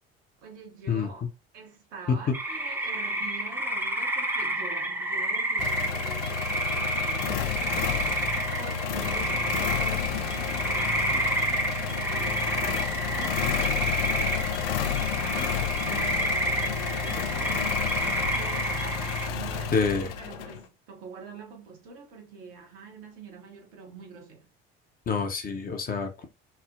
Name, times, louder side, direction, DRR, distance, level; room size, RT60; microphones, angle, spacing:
voice 1, 0.4-1.3 1.5-8.3 8.6-18.1 18.3-19.8 20.2-24.5, right 4 dB, 65° right, 0.9 m, -45 dB
sound 1, 2.3-19.3, right 1 dB, 5° right, 0.6 m, -30 dB
sound 2, 5.6-20.6, left 7 dB, 65° left, 0.6 m, -30 dB
voice 2, 19.7-20.1 25.1-26.3, left 5 dB, 30° left, 0.7 m, -27 dB
3.2 x 2.0 x 2.4 m
figure-of-eight pair, 55°, 30 cm